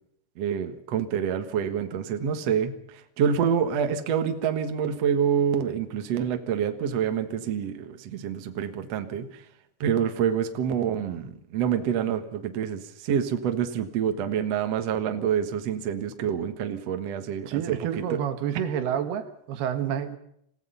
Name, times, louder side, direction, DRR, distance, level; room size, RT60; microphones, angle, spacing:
voice 1, 0.4-9.3 9.8-18.0, right 8 dB, 55° right, 7 dB, 2.0 m, -27 dB
voice 2, 17.5-20.2, right 9 dB, 80° right, 9 dB, 3.4 m, -29 dB
27.0 x 17.0 x 5.6 m, 0.73 s
omnidirectional pair, 4.6 m